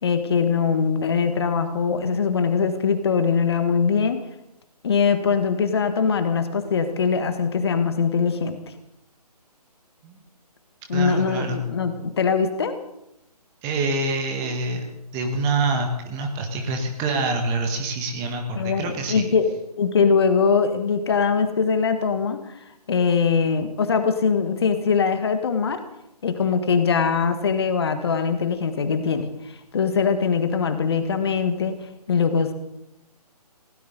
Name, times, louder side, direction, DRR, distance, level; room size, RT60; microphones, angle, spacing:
voice 1, 0.0-4.2 4.8-8.6 10.9-12.7 18.6-19.5 19.8-25.8 26.2-31.8 32.1-32.5, left 5 dB, 40° left, 8 dB, 1.6 m, -22 dB
voice 2, 10.9-11.6 13.6-14.9 15.1-19.3, right 3 dB, 15° right, 4 dB, 1.5 m, -26 dB
19.5 x 17.0 x 4.0 m, 0.83 s
figure-of-eight pair, 145°, 21 cm